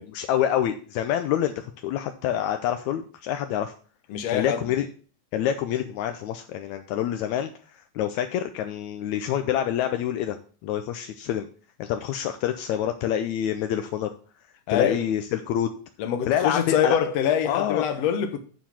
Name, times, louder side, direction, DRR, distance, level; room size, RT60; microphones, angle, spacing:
voice 1, 0.1-3.7 4.3-4.9 5.3-7.5 8.0-11.5 11.8-14.1 14.7-15.7 16.3-17.0 17.5-17.9, left 10 dB, 80° left, 1.7 m, -27 dB
voice 2, 4.1-4.7 14.7-15.0 16.0-18.4, left 8 dB, 65° left, 1.8 m, -24 dB
9.2 x 4.5 x 7.4 m
omnidirectional pair, 3.9 m